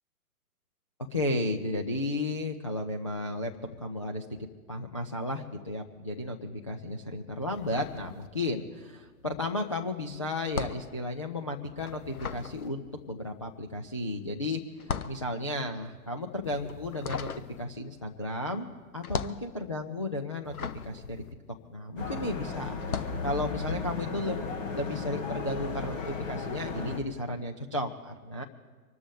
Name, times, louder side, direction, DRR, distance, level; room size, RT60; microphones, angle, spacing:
voice 1, 1.1-3.5 3.8-4.3 4.7-14.6 15.1-17.3 17.6-21.2 21.7-22.7 23.2-24.4 24.7-28.4, left 1 dB, 25° left, 0 dB, 0.3 m, -34 dB
sound 1, 7.5-8.7 9.0-22.2 22.7-23.3, left 5 dB, 75° left, 1.0 m, -38 dB
sound 2, 22.0-27.0, left 4 dB, 55° left, 2.6 m, -35 dB
25.5 x 13.0 x 3.5 m, 1.4 s
figure-of-eight pair, 125°, 45 cm